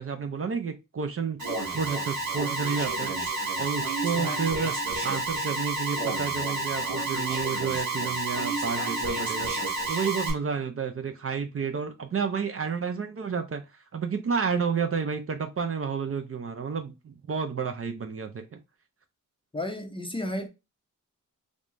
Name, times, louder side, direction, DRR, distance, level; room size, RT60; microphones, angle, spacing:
voice 1, 0.0-4.7 5.0-9.5 9.9-18.6, right 6 dB, 45° right, 0.5 m, -31 dB
Alarm, 1.4-10.3, right 2 dB, 65° right, 1.5 m, -30 dB
voice 2, 4.1-4.5 19.5-20.5, left 1 dB, 15° left, 0.5 m, -33 dB
3.4 x 2.5 x 3.1 m
wide cardioid pair, 165°, 33 cm